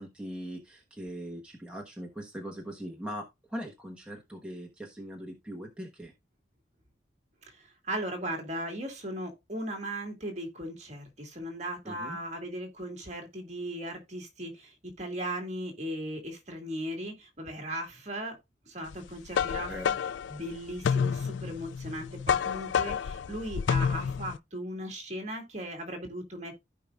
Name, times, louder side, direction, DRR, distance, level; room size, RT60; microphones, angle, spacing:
voice 1, 0.0-6.1 11.8-12.2 19.7-19.9, equal, 5° right, 1.2 m, -40 dB
voice 2, 7.9-11.0 11.4-14.5 15.0-18.3 18.7-19.7 20.3-21.1 21.4-22.9 23.3-26.5, right 1 dB, 40° right, 2.1 m, -37 dB
sound 1, 18.9-24.4, left 7 dB, 90° left, 0.4 m, -29 dB
15.0 x 5.1 x 2.4 m
head